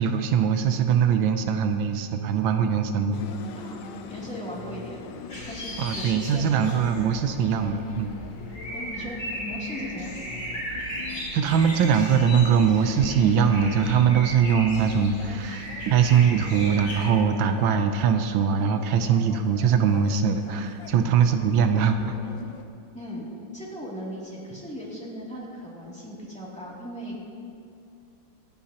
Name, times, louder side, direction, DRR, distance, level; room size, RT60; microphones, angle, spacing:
voice 1, 0.0-3.2 5.8-8.1 11.3-22.2, right 7 dB, 85° right, 7 dB, 1.5 m, -22 dB
sound 1, 3.1-22.6, left 6 dB, 75° left, 1.4 m, -43 dB
voice 2, 3.6-5.0 5.5-7.1 8.7-10.1 22.9-23.3 23.5-27.3, equal, 5° left, -6 dB, 2.6 m, -38 dB
sound 2, 5.3-17.0, equal, 45° left, 4.3 m, -37 dB
25.0 x 9.6 x 2.9 m, 2.4 s
omnidirectional pair, 2.1 m